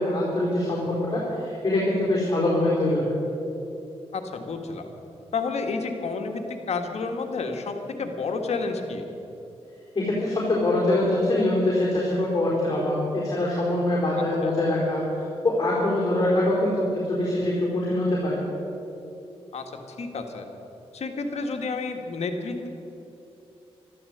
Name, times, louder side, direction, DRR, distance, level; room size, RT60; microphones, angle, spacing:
voice 1, 0.0-3.1 9.9-18.4, left 1 dB, 35° left, -6 dB, 4.3 m, -24 dB
voice 2, 4.1-4.9 5.3-6.4 6.7-9.0 14.4-14.5 19.5-19.6 20.0-20.4 20.9-22.7, left 4 dB, 75° left, 4 dB, 1.7 m, -30 dB
13.0 x 13.0 x 8.0 m, 3.0 s
wide cardioid pair, 100°, 11 cm